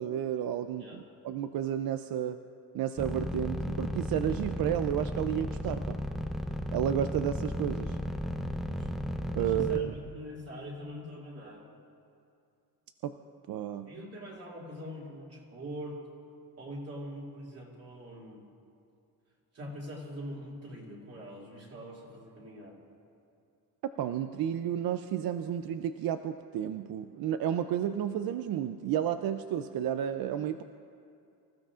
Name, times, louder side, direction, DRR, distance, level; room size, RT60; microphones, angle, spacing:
voice 1, 0.0-2.4 2.7-6.0 6.7-8.0 9.3-9.9 13.0-13.1 13.5-13.9 24.0-30.6, right 10 dB, 65° right, 9 dB, 0.5 m, -32 dB
sound 1, 3.0-9.8, equal, ahead, 0.5 m, -34 dB
voice 2, 9.3-11.7 13.8-16.0 16.6-18.4 19.5-22.8, equal, 40° right, -4 dB, 2.7 m, -43 dB
25.5 x 15.5 x 2.5 m, 2.5 s
cardioid pair, 175°, 38 cm